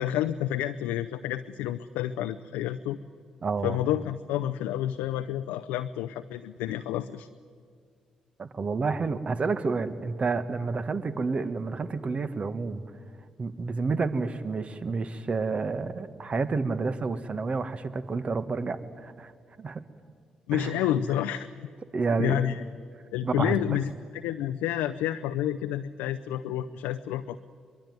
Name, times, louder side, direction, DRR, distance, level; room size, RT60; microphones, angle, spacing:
voice 1, 0.0-3.0 3.6-7.3 20.5-21.5 22.2-22.6 23.1-27.4, left 12 dB, 75° left, 9 dB, 0.6 m, -29 dB
voice 2, 3.4-3.8 8.4-12.8 13.4-19.3 19.6-19.8 20.5-20.9 21.9-22.4 23.2-23.6, right 4 dB, 45° right, 11 dB, 1.6 m, -29 dB
23.0 x 23.0 x 9.4 m, 2.1 s
hypercardioid pair, 40°, 3 cm